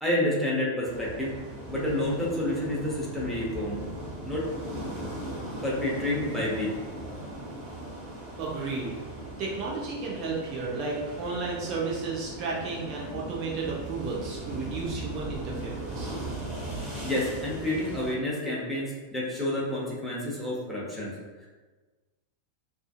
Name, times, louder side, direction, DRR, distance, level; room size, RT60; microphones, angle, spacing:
voice 1, 0.0-1.3 1.7-3.8 4.2-4.5 5.6-6.7 17.0-21.1, left 1 dB, ahead, -6 dB, 0.7 m, -29 dB
sound 1, 0.8-18.1, right 1 dB, 25° right, 1.3 m, -38 dB
voice 2, 8.4-9.0 9.4-16.2, right 4 dB, 40° right, -4 dB, 0.4 m, -33 dB
2.4 x 2.4 x 2.3 m, 1.3 s
figure-of-eight pair, 90°, 0 cm